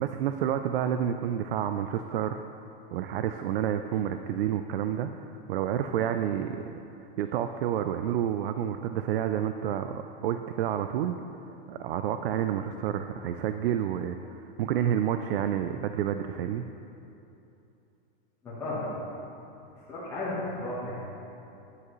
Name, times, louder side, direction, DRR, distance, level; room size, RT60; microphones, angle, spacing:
voice 1, 0.0-2.6 2.9-6.6 7.2-11.2 11.7-16.6, right 10 dB, 75° right, 8 dB, 0.5 m, -29 dB
voice 2, 18.4-18.9 19.9-21.0, left 2 dB, 10° left, -13 dB, 1.3 m, -34 dB
11.0 x 8.3 x 3.1 m, 2.8 s
supercardioid pair, 175°, 29 cm